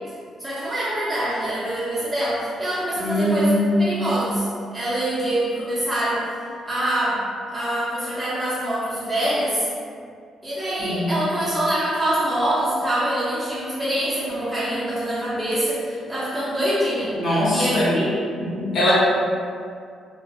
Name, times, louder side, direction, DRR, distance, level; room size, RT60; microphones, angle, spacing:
voice 1, 0.4-4.5 4.7-6.3 6.6-9.7 10.4-17.1 17.5-18.2, right 1 dB, 10° right, -12 dB, 0.7 m, -25 dB
voice 2, 3.0-4.2 10.8-11.3 17.1-18.0 18.5-18.9, left 1 dB, 65° left, -9 dB, 1.0 m, -22 dB
2.3 x 2.0 x 2.7 m, 2.3 s
cardioid pair, 90°, 0 cm